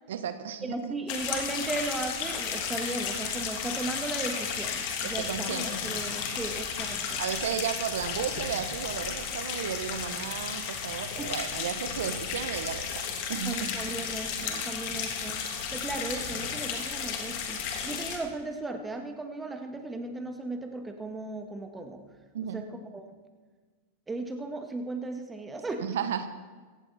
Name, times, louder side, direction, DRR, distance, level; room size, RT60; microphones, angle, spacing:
voice 1, 0.1-0.9 5.0-6.1 7.2-13.0 13.3-13.7 22.3-22.6 25.8-26.3, right 8 dB, 80° right, 11 dB, 1.1 m, -34 dB
voice 2, 0.6-7.2 11.2-11.3 13.5-15.4 15.7-22.0 22.5-22.7 22.9-23.0 24.1-26.0, right 2 dB, 10° right, 5 dB, 2.0 m, -36 dB
sound 1, 1.1-18.2, left 6 dB, 55° left, 2.9 m, -33 dB
17.5 x 14.5 x 4.3 m, 1.4 s
hypercardioid pair, 120°, 0 cm